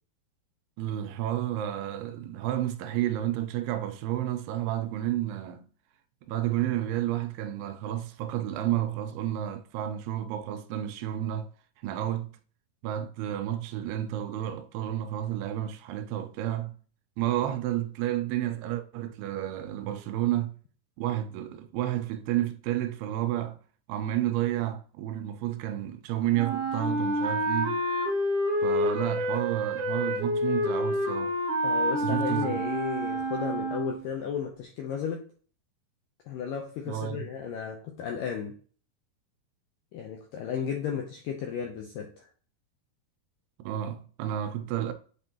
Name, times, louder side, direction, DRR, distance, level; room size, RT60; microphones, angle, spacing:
voice 1, 0.8-5.6 6.3-11.5 11.8-12.3 12.8-16.8 17.2-20.6 21.0-23.6 23.9-27.8 28.6-31.4 32.0-32.6 36.9-37.3 43.6-44.9, right 12 dB, 85° right, 2.6 m, -31 dB
Wind instrument woodwind instrument, 26.3-34.0, equal, 25° right, 2.9 m, -28 dB
voice 2, 31.6-35.2 36.3-38.5 39.9-42.3, left 7 dB, 75° left, 2.1 m, -34 dB
8.0 x 4.3 x 2.8 m
omnidirectional pair, 4.6 m